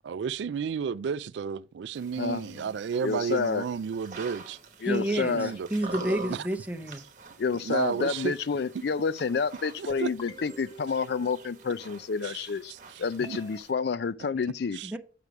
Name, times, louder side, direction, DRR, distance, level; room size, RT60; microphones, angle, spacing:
voice 1, 0.0-4.6 5.1-5.7 6.3-6.5 7.5-8.3 9.8-10.1 12.2-12.4 12.7-13.4 14.2-14.3 14.7-14.9, right 6 dB, 70° right, 0.3 m, -32 dB
sound 1, 2.0-13.7, right 3 dB, 40° right, 1.1 m, -46 dB
voice 2, 2.2-2.7 3.0-3.6 4.8-5.5 7.4-12.7 13.0-14.8, left 5 dB, 60° left, 0.4 m, -29 dB
voice 3, 4.8-7.0 14.8-15.0, right 1 dB, 10° right, 0.6 m, -30 dB
sound 2, 9.9-12.0 13.2-13.6, equal, 20° left, 0.8 m, -47 dB
6.7 x 5.9 x 4.8 m
head